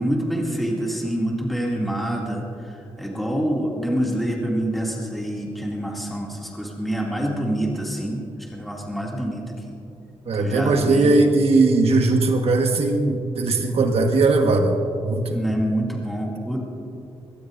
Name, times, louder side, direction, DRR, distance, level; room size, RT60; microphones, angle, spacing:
voice 1, 0.0-9.8 10.4-11.2 15.3-16.6, right 1 dB, ahead, -3 dB, 2.4 m, -26 dB
voice 2, 10.3-15.4, right 3 dB, 70° right, 3 dB, 1.4 m, -19 dB
21.5 x 17.5 x 2.6 m, 2.5 s
wide cardioid pair, 110°, 11 cm